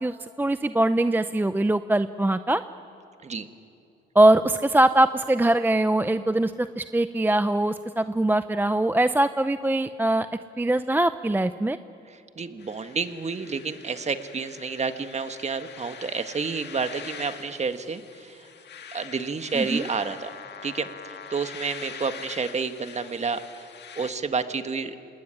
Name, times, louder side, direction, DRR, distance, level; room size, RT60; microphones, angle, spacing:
voice 1, 0.0-2.6 4.2-10.3 10.6-11.8 19.5-19.8, right 1 dB, 10° right, 12 dB, 0.5 m, -22 dB
voice 2, 12.1-18.4 18.9-20.3 20.6-23.4 24.0-25.0, right 5 dB, 35° right, 9 dB, 1.6 m, -30 dB
sound 1, 12.6-24.1, left 7 dB, 60° left, 1.8 m, -44 dB
26.5 x 19.5 x 10.0 m, 2.7 s
cardioid pair, 90°, 20 cm